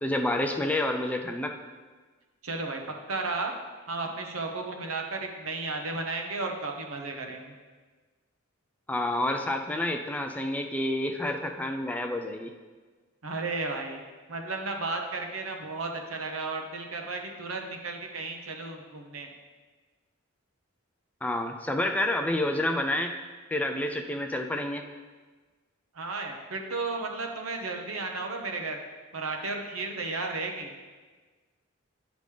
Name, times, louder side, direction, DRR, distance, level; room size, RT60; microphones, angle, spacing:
voice 1, 0.0-1.5 8.9-12.5 21.2-23.2 23.5-24.8, left 1 dB, 5° left, 4 dB, 0.3 m, -29 dB
voice 2, 2.4-2.8 3.1-3.5 3.9-7.5 13.2-14.0 14.3-19.3 25.9-28.8 29.1-30.7, right 3 dB, 70° right, 3 dB, 0.9 m, -34 dB
10.0 x 5.1 x 3.3 m, 1.4 s
head